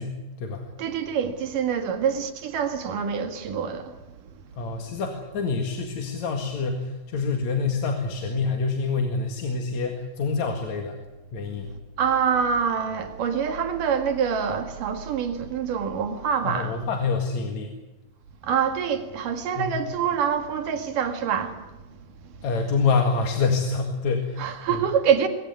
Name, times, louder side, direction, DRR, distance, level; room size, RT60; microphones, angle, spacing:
voice 1, 0.0-0.6 4.6-11.0 11.3-11.7 16.4-17.7 19.6-19.8 22.4-24.8, left 4 dB, 60° left, 3.1 m, -26 dB
voice 2, 0.8-4.0 12.0-16.8 18.4-21.7 22.2-22.3 24.4-25.3, right 7 dB, 70° right, 3.5 m, -25 dB
23.0 x 17.0 x 9.5 m
omnidirectional pair, 3.9 m